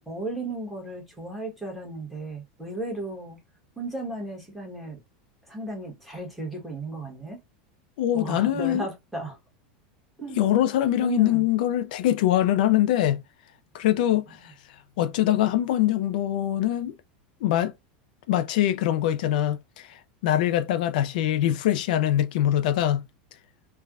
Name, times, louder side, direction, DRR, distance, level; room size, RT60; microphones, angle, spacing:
voice 1, 0.0-3.4 3.8-5.0 5.5-7.4 8.1-9.4 10.2-10.4 11.0-11.4, right 2 dB, ahead, 1.2 m, -35 dB
voice 2, 8.0-8.9 10.4-13.2 13.7-17.0 17.4-17.7 18.3-23.0, left 12 dB, 75° left, 0.4 m, -23 dB
3.3 x 2.2 x 2.4 m
supercardioid pair, 150°, 5 cm